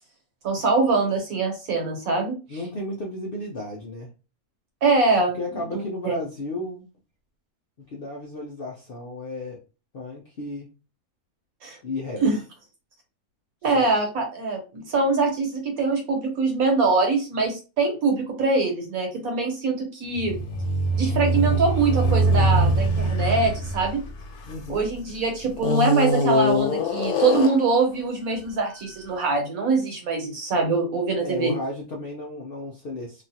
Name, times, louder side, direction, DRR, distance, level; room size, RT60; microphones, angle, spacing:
voice 1, 0.4-2.3 4.8-5.4 5.7-6.1 11.6-11.8 12.2-12.4 13.6-20.4 21.0-24.0 24.7-31.5, right 3 dB, 70° right, 2 dB, 1.4 m, -23 dB
voice 2, 2.5-4.1 5.4-6.9 7.9-9.6 9.9-10.7 11.8-12.2 13.6-13.9 24.5-24.9 31.2-33.2, left 2 dB, 60° left, -2 dB, 0.6 m, -33 dB
sound 1, 20.1-25.0 25.6-27.8, equal, 90° left, 1.3 m, -23 dB
3.0 x 2.3 x 2.7 m, 0.31 s
omnidirectional pair, 1.6 m